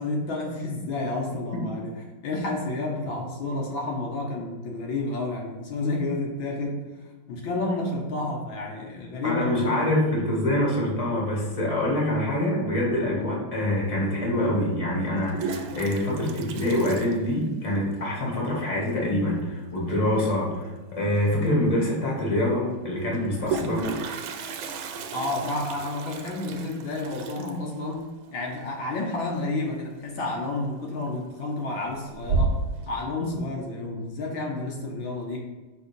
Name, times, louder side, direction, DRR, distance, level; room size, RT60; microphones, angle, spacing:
voice 1, 0.0-6.9 7.3-9.7 25.1-32.6 32.9-35.4, left 2 dB, 70° left, -1 dB, 1.6 m, -30 dB
voice 2, 9.2-24.0, left 1 dB, 20° left, -3 dB, 1.4 m, -25 dB
Toilet flush, 13.8-13.9 15.0-17.9 18.1-18.2 18.5-18.6 18.9-19.3 21.0-21.1 21.4-21.5 23.1-29.8 30.1-30.5 30.9-31.5 31.9-32.9, right 4 dB, 75° right, 1.4 m, -33 dB
5.2 x 3.6 x 5.1 m, 1.2 s
omnidirectional pair, 2.4 m